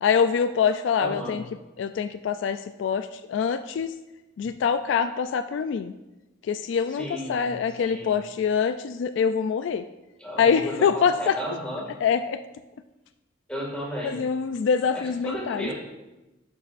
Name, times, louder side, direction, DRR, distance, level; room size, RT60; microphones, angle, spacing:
voice 1, 0.0-1.4 1.8-3.9 4.4-5.9 6.5-9.8 10.4-11.4 12.0-12.4 14.0-15.7, left 6 dB, 70° left, 10 dB, 0.3 m, -24 dB
voice 2, 1.0-1.4 6.9-7.5 7.8-8.1 10.2-11.9 13.5-14.2 14.9-15.7, equal, 5° left, -4 dB, 2.0 m, -34 dB
12.0 x 5.5 x 2.5 m, 1.0 s
head